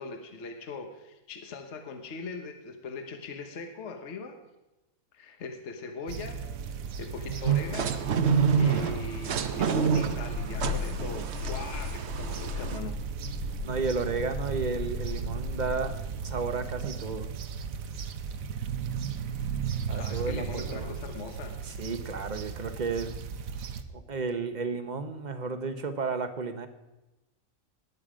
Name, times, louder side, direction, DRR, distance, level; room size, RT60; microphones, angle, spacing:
voice 1, 0.0-4.4 5.1-6.4 7.0-8.0 8.5-13.1 19.7-21.6, left 4 dB, 55° left, 5 dB, 1.4 m, -40 dB
sound 1, 6.1-23.8, right 6 dB, 75° right, 1.3 m, -36 dB
sound 2, 7.5-12.8, right 6 dB, 55° right, 1.0 m, -28 dB
sound 3, 10.3-16.0, left 8 dB, 80° left, 1.1 m, -38 dB
voice 2, 13.6-15.9 16.2-17.3 19.9-20.9 21.6-23.2 23.9-26.7, right 4 dB, 35° right, 9 dB, 1.0 m, -32 dB
19.0 x 9.2 x 5.1 m, 1.0 s
omnidirectional pair, 1.5 m